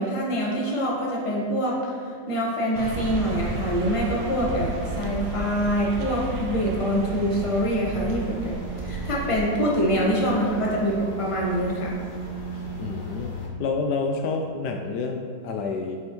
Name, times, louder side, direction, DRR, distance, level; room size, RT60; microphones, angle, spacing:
voice 1, 0.0-1.9 2.3-11.9, equal, 20° left, -4 dB, 1.2 m, -25 dB
sound 1, 2.7-9.4, right 2 dB, 90° right, 1.6 m, -33 dB
sound 2, 3.0-13.5, right 1 dB, 50° left, 1.9 m, -37 dB
voice 2, 12.8-16.0, left 4 dB, 75° left, 3 dB, 1.1 m, -29 dB
11.0 x 5.3 x 3.0 m, 2.2 s
omnidirectional pair, 1.9 m